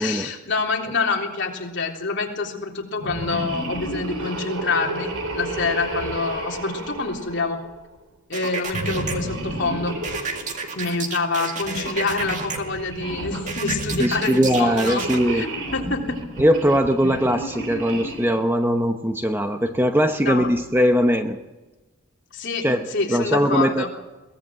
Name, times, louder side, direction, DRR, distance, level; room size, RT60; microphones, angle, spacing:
voice 1, 0.0-7.6 8.3-10.0 10.8-15.5 15.7-16.2 20.2-20.5 22.3-23.9, left 4 dB, 55° left, 0 dB, 3.5 m, -26 dB
sound 1, 3.0-7.8 8.7-11.0 11.6-18.4, right 1 dB, 80° right, 3.9 m, -32 dB
sound 2, 8.3-9.2 10.0-12.6 13.5-15.2, right 4 dB, 35° right, 2.1 m, -31 dB
voice 2, 14.0-15.5 16.4-21.4 22.6-23.9, equal, 10° right, 6 dB, 0.9 m, -20 dB
22.5 x 17.5 x 7.6 m, 1.1 s
head